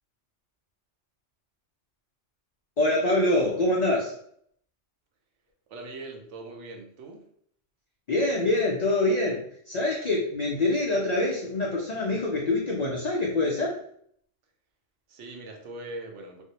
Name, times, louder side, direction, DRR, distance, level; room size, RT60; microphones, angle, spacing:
voice 1, 2.8-4.2 8.1-13.8, left 2 dB, 75° left, -2 dB, 0.3 m, -25 dB
voice 2, 5.7-7.3 15.1-16.4, right 2 dB, 75° right, 2 dB, 0.9 m, -41 dB
2.5 x 2.0 x 2.7 m, 0.65 s
omnidirectional pair, 1.3 m